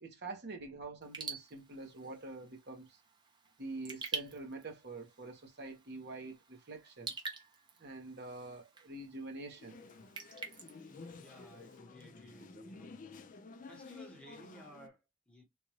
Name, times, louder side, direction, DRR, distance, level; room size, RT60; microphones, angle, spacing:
voice 1, 0.0-2.9 3.6-7.1 7.8-9.8, right 2 dB, 50° right, 1.3 m, -46 dB
Raindrop / Drip, 1.0-11.8, right 4 dB, 20° right, 0.8 m, -48 dB
sound 1, 9.6-14.9, left 4 dB, 40° left, 0.4 m, -52 dB
voice 2, 11.1-13.0 13.6-15.4, equal, 5° left, 1.1 m, -56 dB
3.7 x 2.5 x 2.9 m
head